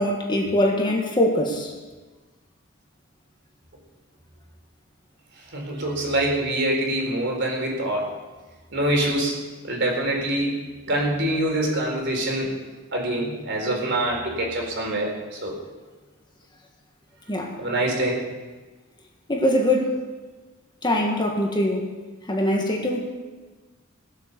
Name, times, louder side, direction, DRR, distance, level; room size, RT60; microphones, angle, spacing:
voice 1, 0.0-1.7 17.3-17.6 19.3-20.0 20.8-21.9 22.3-23.1, left 1 dB, 20° left, 0 dB, 1.8 m, -22 dB
voice 2, 5.5-8.1 8.7-9.4 9.6-12.5 12.9-15.5 17.6-18.2, right 1 dB, 60° right, 0 dB, 4.0 m, -25 dB
19.0 x 8.2 x 6.9 m, 1.3 s
head